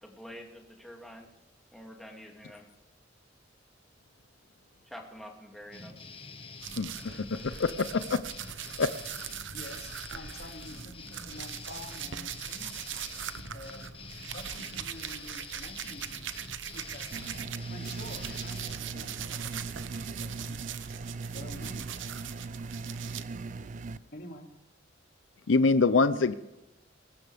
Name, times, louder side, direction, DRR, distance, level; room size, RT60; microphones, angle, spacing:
voice 1, 0.0-1.3 1.7-2.7 4.8-6.0, equal, ahead, 0 dB, 2.5 m, -47 dB
sound 1, 5.7-18.8, left 4 dB, 30° left, 1.3 m, -46 dB
sound 2, 6.6-17.6 17.8-23.2, right 9 dB, 80° right, 0.9 m, -41 dB
voice 2, 7.6-8.2 8.8-8.9 25.5-26.3, left 4 dB, 85° left, 12 dB, 0.6 m, -24 dB
voice 3, 9.5-12.9 13.5-13.9 14.3-16.2 16.7-17.1 17.7-19.4 19.9-20.6 21.3-22.2 24.1-24.5, left 1 dB, 55° left, 2 dB, 2.6 m, -47 dB
sound 3, 17.1-24.0, right 3 dB, 40° right, 0.4 m, -39 dB
22.0 x 13.0 x 3.5 m, 0.95 s
head